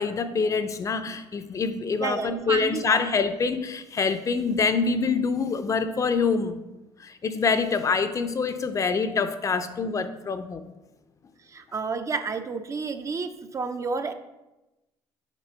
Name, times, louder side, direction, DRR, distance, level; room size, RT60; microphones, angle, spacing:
voice 1, 0.0-6.6 7.0-10.6, left 5 dB, 35° left, 10 dB, 0.5 m, -25 dB
voice 2, 2.0-3.0 11.5-14.1, right 4 dB, 30° right, 9 dB, 0.4 m, -30 dB
6.0 x 4.3 x 4.4 m, 1.0 s
cardioid pair, 105°, 10 cm